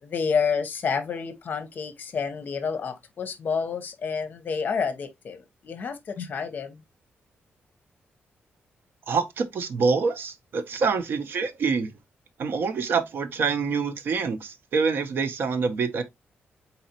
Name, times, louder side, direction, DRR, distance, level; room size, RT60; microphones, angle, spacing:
voice 1, 0.0-6.8, left 6 dB, 45° left, 0.8 m, -29 dB
voice 2, 9.1-11.9 12.4-16.0, right 5 dB, 60° right, 0.7 m, -26 dB
4.1 x 4.0 x 2.7 m
wide cardioid pair, 160°, 4 cm